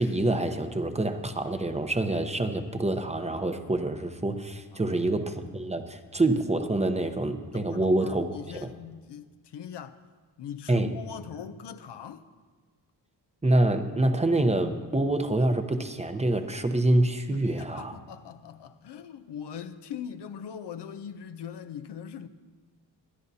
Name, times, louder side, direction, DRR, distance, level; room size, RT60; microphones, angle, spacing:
voice 1, 0.0-8.7 10.7-11.0 13.4-18.0, right 2 dB, 15° right, 0.8 m, -26 dB
voice 2, 7.5-10.0 10.4-12.2 17.3-22.3, left 8 dB, 75° left, 0.7 m, -41 dB
24.0 x 10.5 x 2.8 m
cardioid pair, 95°, 42 cm